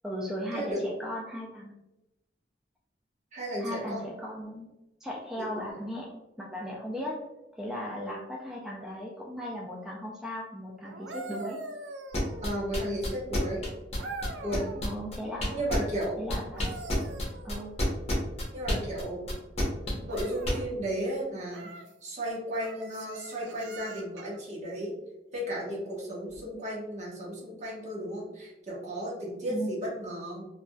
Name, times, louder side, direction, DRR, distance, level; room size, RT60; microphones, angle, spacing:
voice 1, 0.0-1.7 3.6-7.2 7.5-11.6 14.8-15.6 16.2-16.7 17.4-17.7 26.4-26.6 29.5-29.7, equal, 5° right, -4 dB, 0.3 m, -37 dB
voice 2, 3.3-4.0 5.4-5.5 12.4-13.7 14.4-14.7 15.5-16.2 18.5-19.3 20.0-21.7 22.0-24.9 25.3-30.5, right 1 dB, 45° right, -5 dB, 1.1 m, -34 dB
sound 1, 10.8-12.8 14.0-14.9 16.3-18.0 20.1-20.7 21.5-21.9 22.6-24.4 26.3-26.5, right 2 dB, 90° right, 0.4 m, -43 dB
sound 2, 12.1-16.0 16.3-20.5, left 1 dB, 35° left, 0.8 m, -29 dB
3.3 x 2.5 x 2.2 m, 0.94 s
head